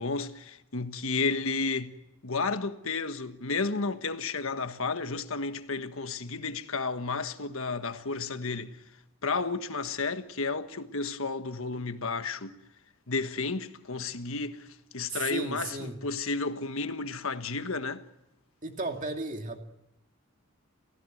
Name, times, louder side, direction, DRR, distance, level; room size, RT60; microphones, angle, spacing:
voice 1, 0.0-2.0 2.2-8.8 9.2-12.6 13.1-18.1, left 4 dB, 70° left, 1.4 m, -32 dB
voice 2, 15.1-16.0 18.6-19.6, right 3 dB, 35° right, 2.4 m, -34 dB
29.0 x 16.0 x 9.3 m
head